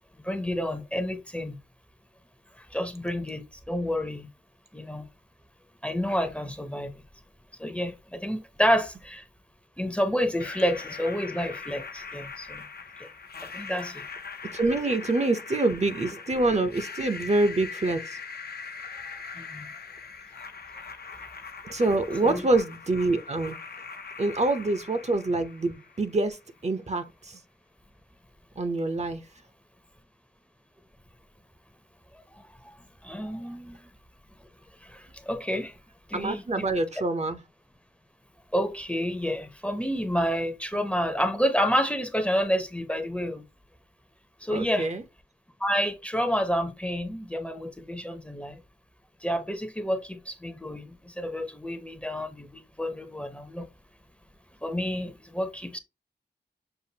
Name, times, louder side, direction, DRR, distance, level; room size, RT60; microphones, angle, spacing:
voice 1, 0.2-1.6 2.6-4.3 4.7-5.1 5.8-7.0 7.6-9.2 9.8-12.6 13.0-13.1 13.4-14.0 19.0-19.7 21.1-21.2 22.2-22.4 32.3-33.9 34.8-35.8 36.1-36.7 38.5-43.4 44.4-44.9 45.6-48.6 49.2-53.7 54.6-55.8, equal, 5° left, 0.7 m, -29 dB
sound 1, 10.4-26.3, left 5 dB, 60° left, 0.7 m, -41 dB
voice 2, 14.5-18.2 21.6-23.6 24.2-26.4 26.6-27.4 28.6-29.2 36.1-37.4 44.5-45.0, right 2 dB, 40° right, 0.7 m, -26 dB
6.7 x 2.5 x 2.8 m
wide cardioid pair, 110°, 18 cm